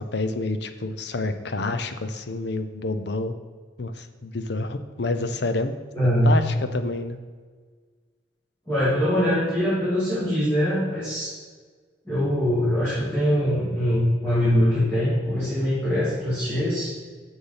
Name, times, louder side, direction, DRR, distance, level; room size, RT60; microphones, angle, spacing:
voice 1, 0.0-3.3 3.8-5.7 6.0-7.2, left 2 dB, 65° left, 9 dB, 0.7 m, -28 dB
voice 2, 5.9-6.3 8.7-11.3 12.1-16.9, equal, 10° left, -11 dB, 2.6 m, -22 dB
7.3 x 6.8 x 5.7 m, 1.5 s
head